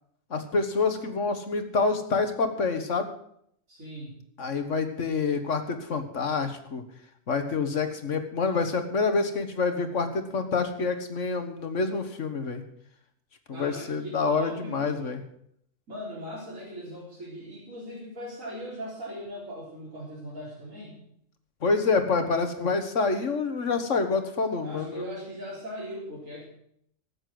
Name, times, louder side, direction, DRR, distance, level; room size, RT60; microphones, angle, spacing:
voice 1, 0.3-3.1 4.4-6.8 7.3-12.6 13.5-15.2 21.6-25.0, left 4 dB, 65° left, 8 dB, 1.9 m, -27 dB
voice 2, 3.7-4.2 13.5-15.0 15.9-21.0 24.6-26.4, equal, 85° right, -5 dB, 4.5 m, -39 dB
13.5 x 8.9 x 7.8 m, 0.70 s
omnidirectional pair, 1.3 m